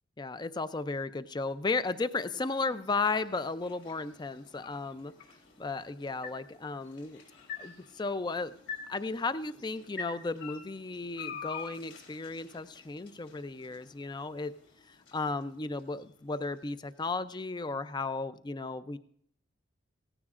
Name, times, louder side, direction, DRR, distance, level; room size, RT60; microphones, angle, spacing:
voice 1, 0.2-5.1 5.6-7.2 7.6-8.5 8.9-14.5 14.9-19.0, left 3 dB, 25° left, 13 dB, 0.4 m, -34 dB
sound 1, 1.1-17.3, left 5 dB, 70° left, 3.4 m, -48 dB
17.0 x 16.0 x 2.5 m, 0.63 s
head